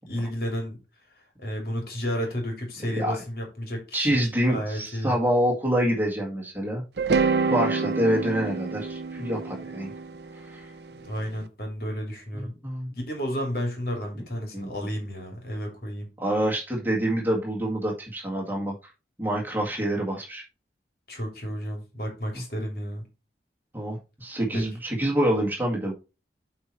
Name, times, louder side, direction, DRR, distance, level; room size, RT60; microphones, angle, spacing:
voice 1, 0.1-0.8 1.4-4.2 4.5-5.2 11.0-12.5 13.0-16.1 21.1-23.0 24.5-24.6, equal, 55° left, 3.0 m, -32 dB
voice 2, 3.9-6.8 7.5-9.9 10.5-10.6 12.3-12.9 14.5-14.7 16.2-18.7 19.2-20.4 23.7-25.9, right 1 dB, 10° right, 1.8 m, -26 dB
sound 1, 7.0-11.1, right 4 dB, 70° right, 0.7 m, -27 dB
8.6 x 4.4 x 4.4 m
head